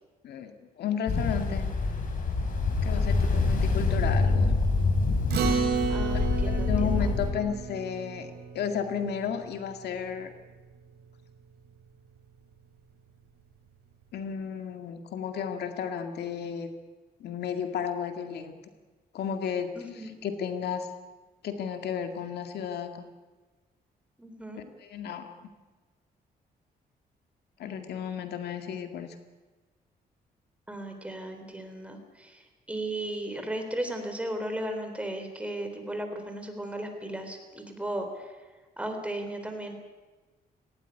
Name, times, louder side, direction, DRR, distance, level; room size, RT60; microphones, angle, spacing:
voice 1, 0.2-1.7 2.8-4.6 6.5-10.3 14.1-16.7 17.2-18.6 19.1-19.7 20.2-20.9 21.4-23.1 24.8-25.3 27.6-29.2, left 7 dB, 85° left, 6 dB, 2.1 m, -33 dB
Ocean, 1.1-7.3, left 3 dB, 55° left, 4.8 m, -26 dB
voice 2, 2.9-3.5 5.9-7.1 19.8-20.2 24.2-24.6 30.7-38.4 38.8-39.7, right 1 dB, 5° right, 5 dB, 3.7 m, -36 dB
Acoustic guitar, 5.3-10.0, right 6 dB, 80° right, 3.4 m, -32 dB
18.5 x 17.5 x 9.8 m, 1.3 s
cardioid pair, 130°, 17 cm